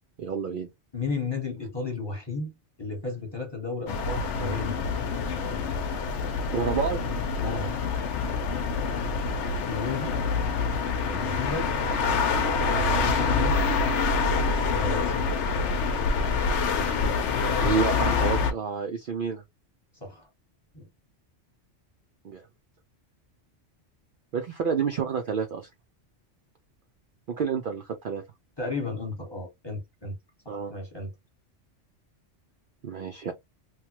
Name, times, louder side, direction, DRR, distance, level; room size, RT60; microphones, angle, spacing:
voice 1, 0.2-0.7 6.5-7.0 17.6-19.4 22.2-22.5 24.3-25.7 27.3-28.2 30.5-30.7 32.8-33.3, right 6 dB, 60° right, 0.6 m, -29 dB
voice 2, 0.9-4.7 7.4-7.8 9.7-10.2 11.0-11.7 12.7-13.7 14.7-15.3 20.0-20.3 20.7-20.9 28.6-30.2 30.4-31.1, left 3 dB, 20° left, 1.2 m, -33 dB
sound 1, 3.9-18.5, left 4 dB, 75° left, 0.9 m, -26 dB
3.1 x 2.2 x 2.9 m
omnidirectional pair, 1.2 m